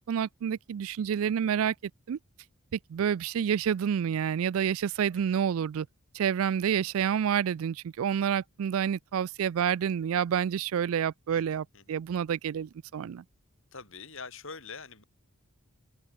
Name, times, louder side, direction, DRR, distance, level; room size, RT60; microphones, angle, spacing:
voice 1, 0.0-2.2 2.7-5.9 6.1-13.2, right 8 dB, 70° right, 0.3 m, -29 dB
voice 2, 11.3-12.0 13.7-15.0, left 4 dB, 60° left, 6.4 m, -45 dB
open air
head